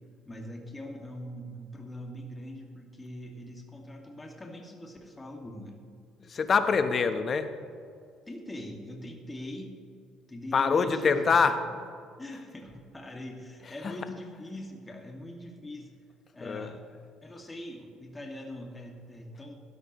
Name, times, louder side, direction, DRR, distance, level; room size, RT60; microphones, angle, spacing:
voice 1, 0.3-5.8 6.7-6.8 8.3-9.8 10.3-11.4 12.2-15.9 16.3-16.8 17.2-19.5, left 1 dB, 20° left, 1 dB, 2.2 m, -42 dB
voice 2, 6.2-7.5 10.5-11.6 13.6-14.0 16.4-16.7, left 5 dB, 40° left, 9 dB, 1.1 m, -25 dB
16.0 x 12.5 x 3.2 m, 2.4 s
hypercardioid pair, 65°, 0 cm